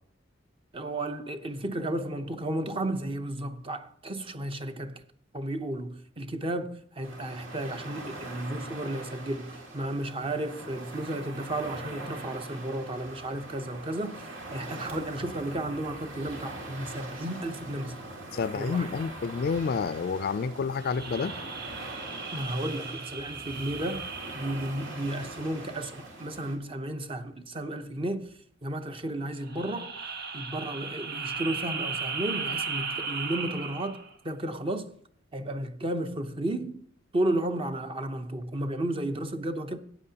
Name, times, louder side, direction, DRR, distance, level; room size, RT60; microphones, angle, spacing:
voice 1, 0.7-5.0 5.3-18.1 18.5-18.9 22.3-24.1 24.3-29.9 30.3-34.9 35.3-36.8 37.1-39.8, right 1 dB, 30° right, 0.7 m, -33 dB
sound 1, 7.0-26.6, right 2 dB, 80° right, 2.4 m, -42 dB
voice 2, 18.3-21.4, left 5 dB, 50° left, 0.4 m, -29 dB
sound 2, 20.8-25.6 29.4-34.1, right 5 dB, 55° right, 1.2 m, -36 dB
15.0 x 8.9 x 2.8 m
head